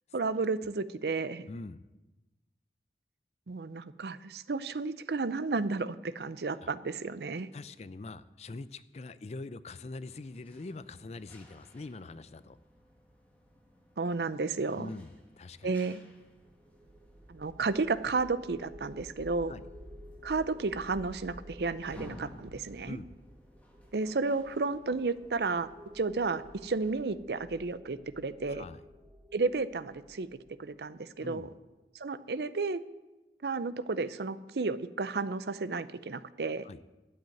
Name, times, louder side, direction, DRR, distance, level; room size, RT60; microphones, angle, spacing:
voice 1, 0.1-1.5 3.5-7.5 14.0-14.9 15.6-16.0 17.3-19.5 20.2-23.0 23.9-25.7 25.9-28.6 29.3-30.3 30.6-31.5 31.9-32.8 33.4-36.7, right 4 dB, 70° right, 16 dB, 0.6 m, -32 dB
voice 2, 1.4-1.8 7.5-12.6 14.8-15.8 19.5-19.6 22.8-23.1 28.5-28.8 31.2-31.5 36.6-36.8, left 3 dB, 35° left, 15 dB, 0.4 m, -43 dB
sound 1, 10.0-27.1, equal, 10° left, 1.9 m, -57 dB
sound 2, 16.3-31.4, equal, 15° right, 0.9 m, -52 dB
12.0 x 8.0 x 9.1 m, 1.1 s
head